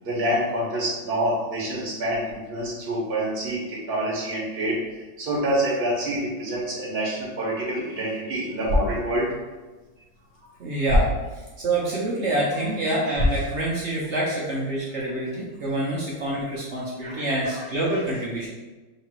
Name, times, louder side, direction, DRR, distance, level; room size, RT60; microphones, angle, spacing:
voice 1, 0.0-4.8 5.2-9.3, right 1 dB, 40° right, -5 dB, 1.0 m, -27 dB
sound 1, 8.5-14.5, left 1 dB, 45° left, 0.6 m, -29 dB
voice 2, 10.6-18.5, right 1 dB, 60° right, -5 dB, 0.7 m, -27 dB
3.2 x 2.9 x 4.5 m, 1.2 s
omnidirectional pair, 2.0 m